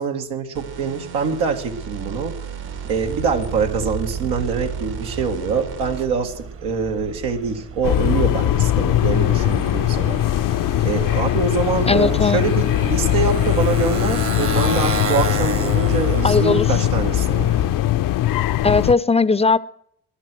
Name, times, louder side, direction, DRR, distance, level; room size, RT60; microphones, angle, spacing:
voice 1, 0.0-2.4 2.9-10.2 10.8-17.5, right 5 dB, 90° right, 2.0 m, -24 dB
sound 1, 0.5-6.3, right 7 dB, 70° right, 2.4 m, -33 dB
Motorcycle, 2.5-17.9, right 5 dB, 35° right, 1.1 m, -32 dB
sound 2, 7.8-18.9, left 13 dB, 55° left, 0.6 m, -20 dB
voice 2, 11.9-12.4 16.2-16.7 18.6-19.6, left 4 dB, 15° left, 0.6 m, -17 dB
19.5 x 11.5 x 6.2 m
supercardioid pair, 80°, 38 cm